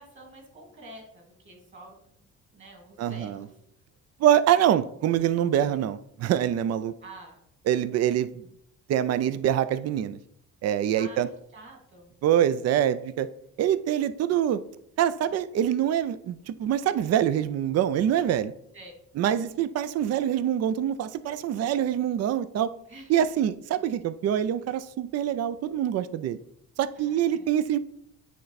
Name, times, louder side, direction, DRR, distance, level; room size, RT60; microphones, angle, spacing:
voice 1, 0.0-2.1 2.5-3.5 7.0-7.4 10.9-11.2 11.5-12.1 18.7-18.9 22.9-23.3 27.0-27.5, right 2 dB, 40° right, 1 dB, 2.4 m, -47 dB
voice 2, 3.0-3.4 4.2-6.9 7.7-8.4 8.9-10.2 10.6-11.3 12.2-13.3 13.6-14.6 15.0-18.5 19.2-22.7 23.1-26.4 26.8-27.8, right 10 dB, 55° right, 15 dB, 0.4 m, -25 dB
9.1 x 3.3 x 4.1 m, 0.70 s
cardioid pair, 90°, 30 cm